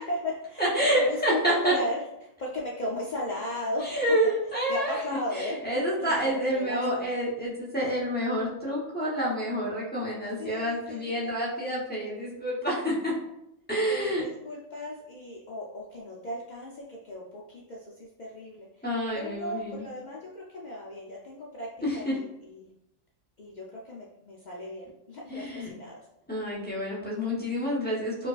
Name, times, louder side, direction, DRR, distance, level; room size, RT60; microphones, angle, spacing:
voice 1, 0.0-3.9 4.2-4.3 4.7-5.6 6.0-7.1 10.4-11.3 13.9-18.9 19.1-21.7 21.9-22.7 23.4-26.1, left 1 dB, 80° left, -4 dB, 0.4 m, -36 dB
voice 2, 0.6-1.7 3.8-5.0 5.3-13.1 13.7-14.2 18.8-19.9 21.8-22.1 25.3-25.7 26.3-28.3, equal, 10° left, -7 dB, 0.6 m, -28 dB
4.6 x 2.3 x 2.4 m, 0.83 s
omnidirectional pair, 1.4 m